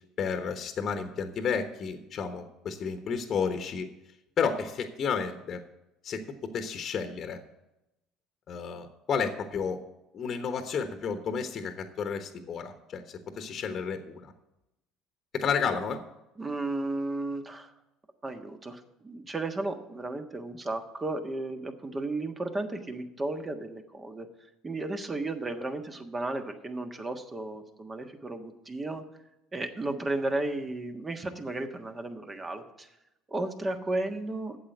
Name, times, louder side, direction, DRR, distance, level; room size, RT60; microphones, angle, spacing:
voice 1, 0.2-3.9 4.4-5.6 6.0-7.4 8.5-9.8 10.1-14.3 15.3-16.0, left 6 dB, 45° left, 7 dB, 1.1 m, -31 dB
voice 2, 16.4-17.7 18.2-24.3 24.6-29.0 29.5-32.9 33.3-34.6, right 2 dB, 25° right, 7 dB, 1.4 m, -34 dB
8.6 x 7.3 x 8.0 m, 0.90 s
hypercardioid pair, 70°, 0 cm